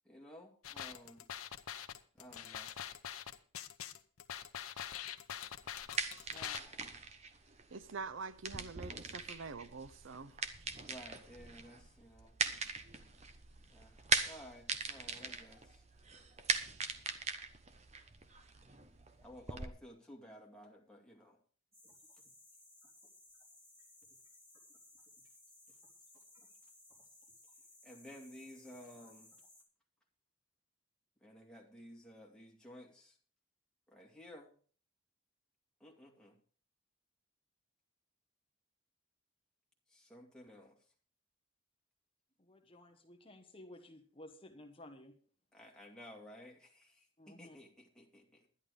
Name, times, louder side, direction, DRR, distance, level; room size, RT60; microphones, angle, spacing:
voice 1, 0.0-1.3 2.1-2.7 6.3-7.1 10.9-12.3 13.7-14.0 14.3-15.8 19.2-21.4 27.8-29.3 31.2-33.2 33.9-34.5 35.8-36.4 39.9-40.8 45.5-48.4, equal, 5° left, 2.3 m, -54 dB
sound 1, 0.6-6.6, left 9 dB, 90° left, 0.9 m, -44 dB
sound 2, 5.6-19.7, right 4 dB, 30° right, 0.9 m, -40 dB
voice 2, 7.7-10.4, right 4 dB, 65° right, 0.6 m, -45 dB
sound 3, 21.7-29.6, left 2 dB, 15° right, 4.0 m, -61 dB
voice 3, 42.4-45.1 47.2-47.6, left 1 dB, 25° left, 1.2 m, -55 dB
11.0 x 11.0 x 5.1 m
head